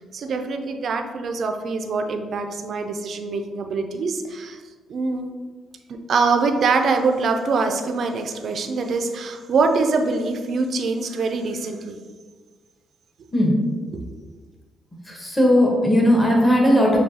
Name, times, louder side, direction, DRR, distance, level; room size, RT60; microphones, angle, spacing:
voice 1, 0.1-4.6 4.9-5.3 6.1-12.0, right 4 dB, 60° right, 5 dB, 0.4 m, -24 dB
voice 2, 15.0-17.0, equal, 15° left, -3 dB, 1.2 m, -17 dB
6.6 x 2.3 x 2.8 m, 1.5 s
cardioid pair, 90°, 0 cm